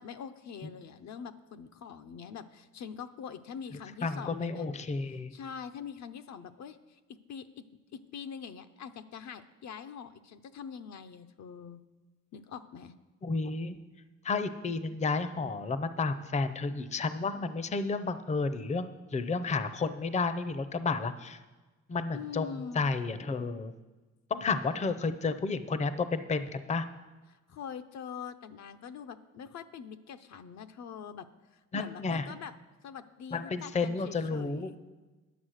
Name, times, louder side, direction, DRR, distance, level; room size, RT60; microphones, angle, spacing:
voice 1, 0.0-4.7 5.3-11.8 12.3-12.9 22.1-22.9 27.3-31.3 31.5-32.5 32.8-34.8, left 7 dB, 65° left, 10 dB, 0.7 m, -44 dB
voice 2, 4.0-5.3 13.2-13.8 14.2-21.4 21.9-23.7 24.3-26.8 31.7-32.3 33.3-34.7, left 4 dB, 25° left, 12 dB, 0.6 m, -31 dB
10.0 x 7.2 x 6.4 m, 1.2 s
cardioid pair, 90°, 30 cm